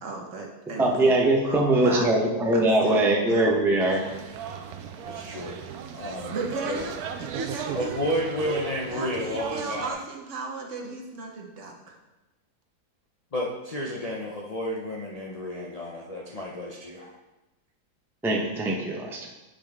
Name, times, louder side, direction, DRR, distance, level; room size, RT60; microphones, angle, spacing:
voice 1, 0.0-1.1 1.4-2.1 2.5-3.0 3.3-3.5 6.3-8.7 8.9-12.0, right 3 dB, 55° right, 1 dB, 1.1 m, -35 dB
voice 2, 0.8-4.0 18.2-19.3, right 2 dB, 5° right, -1 dB, 0.5 m, -22 dB
sound 1, 3.8-9.9, right 7 dB, 75° right, 1.0 m, -37 dB
voice 3, 5.1-5.6 5.9-6.4 6.7-6.8 7.7-10.0 13.3-17.1, equal, 80° left, -3 dB, 0.3 m, -31 dB
8.3 x 5.1 x 3.5 m, 1.0 s
omnidirectional pair, 1.8 m